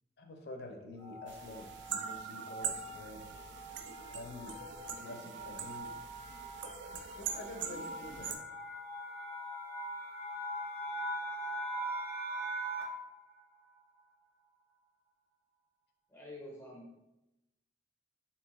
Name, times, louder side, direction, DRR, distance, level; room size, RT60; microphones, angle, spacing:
voice 1, 0.2-3.2 4.1-4.6 5.0-5.9 7.2-8.4, left 1 dB, 65° left, 4 dB, 0.5 m, -47 dB
Glass Rising Build Up With Reverb, 1.0-13.1, right 1 dB, 55° right, 0.8 m, -42 dB
sound 1, 1.3-8.4, right 7 dB, 85° right, 0.4 m, -43 dB
voice 2, 16.1-17.1, left 1 dB, 15° left, -3 dB, 0.6 m, -48 dB
3.5 x 2.7 x 2.9 m, 0.93 s
head